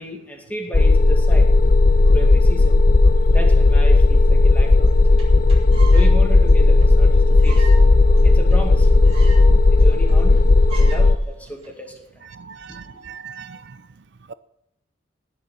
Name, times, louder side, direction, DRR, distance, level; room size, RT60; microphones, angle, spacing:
voice 1, 0.0-1.5 2.1-2.8 3.3-5.3 5.8-7.7 8.2-9.3 9.7-10.4 10.7-12.3 12.7-12.8, right 1 dB, 10° left, 2.3 m, -33 dB
sound 1, 0.7-11.2, left 3 dB, 45° left, 0.6 m, -14 dB
sound 2, 3.8-9.9, left 1 dB, 70° left, 2.0 m, -25 dB
sound 3, 4.9-5.0 5.2-5.3 5.5-6.1 6.5-6.6 6.8-6.9 7.4-7.8 8.2-8.3 8.5-8.6 8.8-9.5 9.8-9.9 10.1-10.4 10.7-11.0 11.6-11.9, right 4 dB, 30° right, 4.4 m, -36 dB
voice 2, 12.3-13.8 14.3-14.4, right 6 dB, 60° right, 0.5 m, -39 dB
19.0 x 6.7 x 7.2 m
head